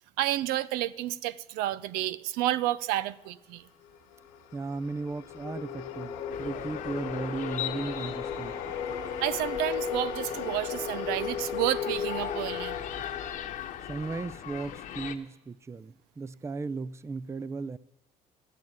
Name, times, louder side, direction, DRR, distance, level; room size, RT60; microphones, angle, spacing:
voice 1, 0.2-3.6 9.2-12.8, right 14 dB, 80° right, 0.5 m, -30 dB
sound 1, 3.8-14.2, left 6 dB, 90° left, 1.8 m, -36 dB
voice 2, 4.5-8.6 13.9-17.8, right 4 dB, 20° right, 0.5 m, -36 dB
sound 2, 6.3-15.1, left 10 dB, 60° left, 1.2 m, -39 dB
14.0 x 7.2 x 9.2 m
supercardioid pair, 85°, 15 cm